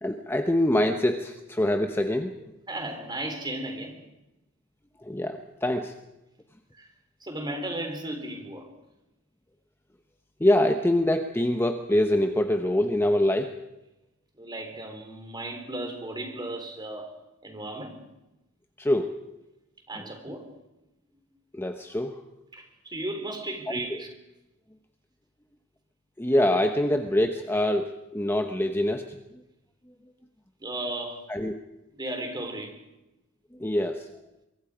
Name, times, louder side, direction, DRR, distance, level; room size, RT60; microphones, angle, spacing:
voice 1, 0.0-2.3 5.0-5.9 10.4-13.6 18.8-19.2 21.5-22.2 23.7-24.0 26.2-29.2 31.3-31.5 33.5-34.1, left 1 dB, 10° left, 6 dB, 0.9 m, -25 dB
voice 2, 2.7-4.0 6.8-6.9 7.2-8.7 14.4-17.1 17.4-18.0 19.9-20.5 22.5-24.1 30.6-31.3 32.0-32.8, right 1 dB, 20° right, 4 dB, 3.7 m, -35 dB
23.5 x 23.5 x 5.0 m, 0.94 s
head